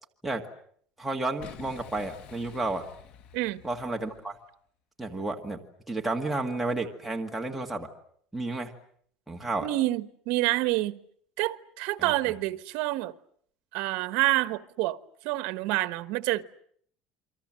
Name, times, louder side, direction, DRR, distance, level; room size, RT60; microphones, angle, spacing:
voice 1, 1.0-2.8 3.6-4.4 5.0-5.6 5.9-7.9 8.3-8.7 9.3-9.7 12.0-12.1, right 2 dB, 5° right, 1.9 m, -31 dB
Boom, 1.4-4.4, left 8 dB, 50° left, 1.9 m, -49 dB
voice 2, 9.6-11.0 11.4-13.1 13.7-15.0 15.2-16.4, right 18 dB, 75° right, 1.3 m, -27 dB
28.5 x 24.5 x 7.7 m
cardioid pair, 160°, 2 cm